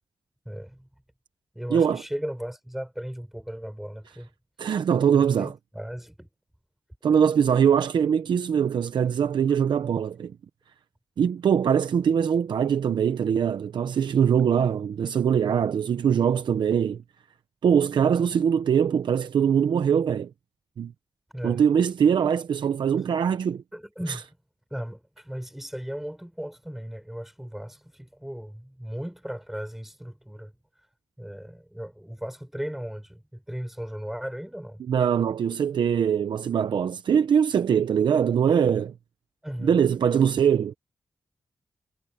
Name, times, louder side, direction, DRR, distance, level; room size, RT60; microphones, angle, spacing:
voice 1, 0.4-0.9 1.5-4.3 5.1-6.3 21.3-21.6 23.7-24.3 24.7-30.5 31.2-34.8 39.4-39.8, equal, 5° right, 6.5 m, -36 dB
voice 2, 1.7-2.0 4.6-5.5 7.0-10.4 11.2-17.0 17.6-20.3 20.8-20.9 21.4-23.6 24.1-24.2 34.9-38.9 39.6-40.7, right 7 dB, 80° right, 0.7 m, -22 dB
wide cardioid pair, 175°, 8 cm